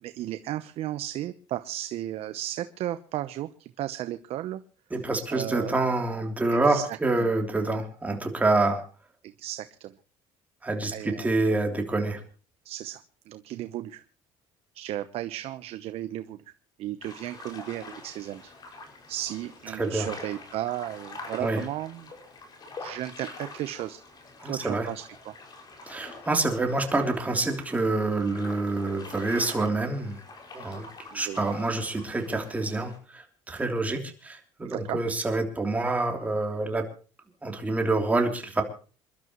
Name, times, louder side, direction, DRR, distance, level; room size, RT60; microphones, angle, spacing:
voice 1, 0.0-4.6 5.3-5.7 6.5-7.3 9.2-9.9 10.9-11.3 12.6-14.0 14.7-16.4 16.8-18.5 19.1-22.1 22.8-24.0 24.4-25.3 31.1-31.5 34.6-35.0, right 13 dB, 60° right, 11 dB, 0.9 m, -35 dB
voice 2, 4.9-8.8 10.6-12.2 19.8-20.1 21.4-21.6 24.4-24.9 25.9-30.2 30.5-30.8 31.1-36.8 37.4-38.6, right 2 dB, 15° right, 3 dB, 3.2 m, -27 dB
sound 1, 17.0-33.0, left 3 dB, 35° left, 5.9 m, -45 dB
27.5 x 12.0 x 3.1 m, 0.38 s
cardioid pair, 125°, 11 cm